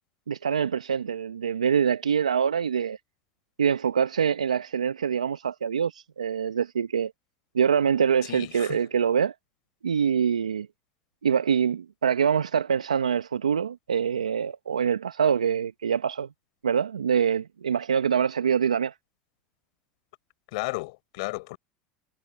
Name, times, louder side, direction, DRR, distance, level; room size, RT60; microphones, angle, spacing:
voice 1, 0.3-3.0 3.6-7.1 7.5-9.3 9.8-10.7 11.2-16.3 16.6-18.9, right 7 dB, 90° right, 1.2 m, -25 dB
voice 2, 8.3-8.8 20.5-21.6, left 25 dB, 65° left, 4.5 m, -33 dB
hypercardioid pair, 80°, 4 cm